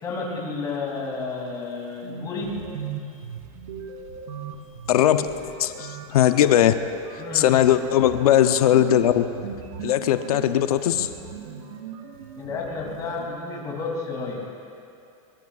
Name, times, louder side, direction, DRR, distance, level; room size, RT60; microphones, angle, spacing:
voice 1, 0.0-2.7 7.2-7.6 12.4-14.4, left 3 dB, 20° left, -3 dB, 2.9 m, -31 dB
sound 1, 1.7-1.8 2.0-13.3, right 6 dB, 70° right, 2.6 m, -38 dB
voice 2, 4.9-5.3 5.6-6.7 7.3-9.3 9.8-11.1, left 11 dB, 85° left, 9 dB, 0.8 m, -19 dB
23.0 x 22.5 x 2.5 m, 2.5 s
supercardioid pair, 170°, 19 cm